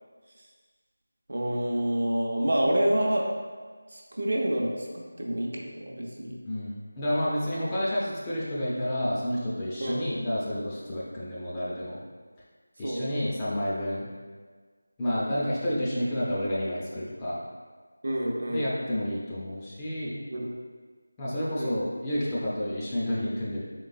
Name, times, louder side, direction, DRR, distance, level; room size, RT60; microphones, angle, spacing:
voice 1, 1.3-3.3 3.9-6.3 9.8-10.0 12.8-13.1 18.0-18.7 20.3-20.5 21.5-21.8, right 1 dB, 60° right, -1 dB, 0.6 m, -28 dB
voice 2, 6.4-12.0 12.8-14.1 15.0-17.4 18.5-20.2 21.2-23.6, equal, 15° left, -9 dB, 0.5 m, -30 dB
3.8 x 3.2 x 2.4 m, 1.5 s
figure-of-eight pair, 165°, 0 cm